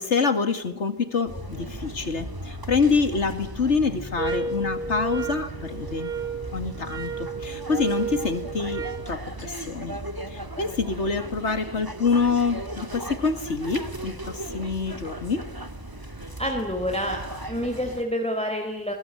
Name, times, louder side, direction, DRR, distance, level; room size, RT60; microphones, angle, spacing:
voice 1, 0.0-6.1 6.5-10.0 10.3-15.4, left 4 dB, 50° left, 10 dB, 2.5 m, -26 dB
sound 1, 1.3-18.0, right 1 dB, 15° right, 2.2 m, -37 dB
sound 2, 4.2-9.1, right 5 dB, 75° right, 2.9 m, -32 dB
voice 2, 16.4-17.2 17.5-18.9, equal, 5° left, 3 dB, 3.9 m, -28 dB
23.0 x 22.0 x 9.0 m, 0.83 s
omnidirectional pair, 1.6 m